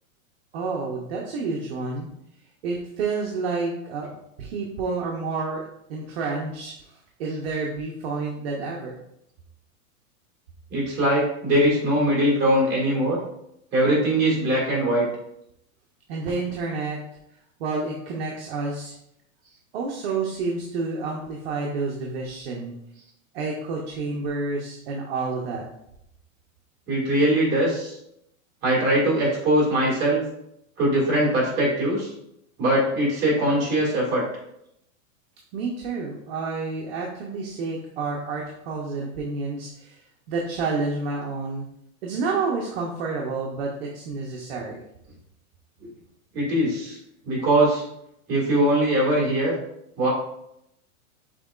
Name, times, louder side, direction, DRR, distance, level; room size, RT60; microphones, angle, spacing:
voice 1, 0.5-2.1 2.6-5.6 5.9-9.0 16.1-17.0 17.6-18.9 19.7-22.7 23.3-25.7 35.5-40.0 40.3-41.6 42.0-44.8, right 4 dB, 45° right, -1 dB, 0.8 m, -29 dB
voice 2, 10.7-13.2 13.7-15.1 26.9-28.0 28.6-30.2 30.8-32.1 32.6-34.2 45.8-45.9 46.3-47.0 47.2-47.8 48.3-49.5 50.0-50.1, right 1 dB, 25° right, -4 dB, 1.8 m, -21 dB
6.1 x 3.7 x 2.4 m, 0.79 s
supercardioid pair, 165°, 42 cm